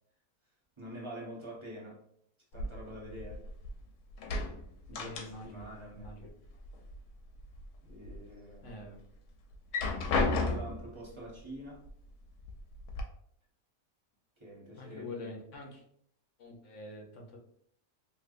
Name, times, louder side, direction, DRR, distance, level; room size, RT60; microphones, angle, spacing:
voice 1, 0.8-2.0 2.5-3.5 4.9-6.2 7.9-8.7 10.1-11.9 14.4-15.3, right 1 dB, 20° right, 1.0 m, -46 dB
sound 1, 2.5-3.8 4.1-5.7 6.0-7.0 7.4-8.2 8.7-8.8 9.5-10.9 11.9-12.0 12.4-13.0, left 3 dB, 85° left, 1.1 m, -34 dB
voice 2, 4.9-6.3 8.6-9.0 14.8-15.8 16.4-17.4, left 1 dB, 60° left, 1.0 m, -46 dB
3.3 x 3.0 x 2.4 m
omnidirectional pair, 1.6 m